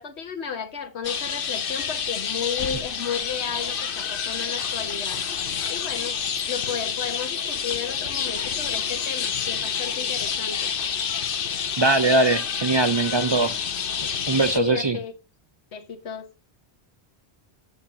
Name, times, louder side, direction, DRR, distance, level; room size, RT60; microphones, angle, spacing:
voice 1, 0.0-5.2 5.7-6.2 6.5-10.7 13.2-13.4 14.5-15.1 15.7-16.3, left 7 dB, 90° left, 1.5 m, -33 dB
sound 1, 1.0-14.6, left 7 dB, 60° left, 1.0 m, -28 dB
voice 2, 11.8-13.5 14.3-15.0, right 3 dB, 40° right, 0.4 m, -21 dB
9.8 x 7.0 x 3.7 m
omnidirectional pair, 1.1 m